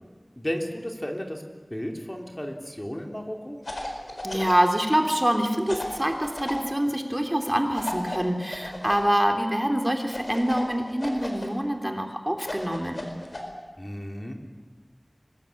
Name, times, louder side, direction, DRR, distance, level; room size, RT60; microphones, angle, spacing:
voice 1, 0.4-1.4 1.7-3.6 13.8-14.3, equal, 25° left, 2 dB, 3.4 m, -33 dB
sound 1, 3.6-4.7 5.7-6.6 7.7-9.0 10.1-11.5 12.4-13.4, left 1 dB, 80° left, 4.7 m, -34 dB
voice 2, 4.2-13.1, equal, 20° right, 4 dB, 3.1 m, -25 dB
25.0 x 20.0 x 8.5 m, 1.3 s
wide cardioid pair, 40°, 0 cm